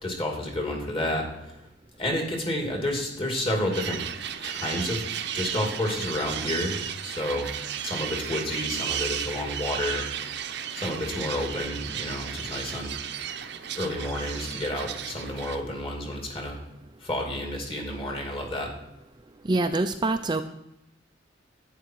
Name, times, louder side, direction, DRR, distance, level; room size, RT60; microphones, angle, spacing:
voice 1, 0.0-1.5 2.0-4.0 4.4-5.0 5.3-7.5 7.8-10.1 10.7-12.9 13.8-16.6 17.0-18.7, left 1 dB, 30° left, 1 dB, 2.7 m, -30 dB
sound 1, 3.7-15.6, right 9 dB, 65° right, 0.8 m, -34 dB
voice 2, 19.5-20.4, right 2 dB, 25° right, 7 dB, 0.5 m, -25 dB
11.0 x 9.4 x 4.7 m, 0.84 s
head